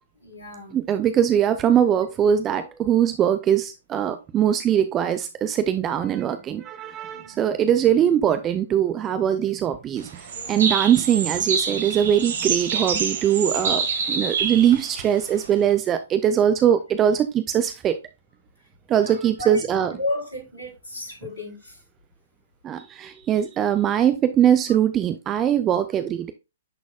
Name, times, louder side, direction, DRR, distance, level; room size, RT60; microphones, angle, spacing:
voice 1, 0.2-0.8 7.1-7.4 10.3-10.8 18.9-19.6 19.9-21.8, left 2 dB, 75° left, 4.3 m, -34 dB
voice 2, 0.7-18.0 18.9-19.9 22.6-26.3, right 9 dB, 20° right, 0.5 m, -21 dB
sound 1, 10.0-15.7, right 5 dB, 55° right, 1.4 m, -26 dB
10.5 x 4.1 x 2.2 m
figure-of-eight pair, 120°, 0 cm